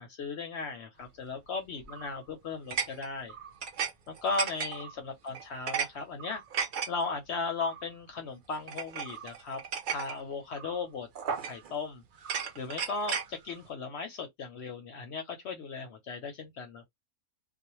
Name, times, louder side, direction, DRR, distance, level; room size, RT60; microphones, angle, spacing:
voice 1, 0.0-3.3 4.1-6.4 6.9-9.6 9.9-11.1 11.4-12.0 12.6-16.8, left 4 dB, 60° left, 0.8 m, -36 dB
sound 1, 1.8-2.2 2.7-3.9 4.2-4.9 5.3-5.9 6.2-6.9 7.6-7.8 8.7-10.2 10.6-10.8 11.2-11.8 12.2-13.3, right 6 dB, 65° right, 0.5 m, -35 dB
2.4 x 2.1 x 3.0 m
omnidirectional pair, 1.5 m